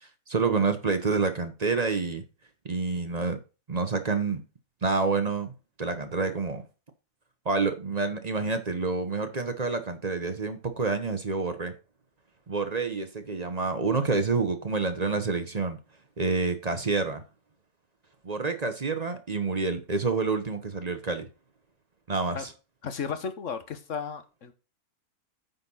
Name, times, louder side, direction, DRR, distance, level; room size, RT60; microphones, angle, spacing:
voice 1, 0.0-2.2 2.6-3.4 3.7-4.4 4.8-5.5 5.8-6.6 7.4-11.7 12.5-15.8 16.2-17.2 18.2-21.3 22.1-22.5, right 4 dB, 35° right, 0.8 m, -28 dB
voice 2, 22.8-24.5, left 6 dB, 55° left, 1.3 m, -34 dB
9.2 x 4.3 x 5.5 m
omnidirectional pair, 1.6 m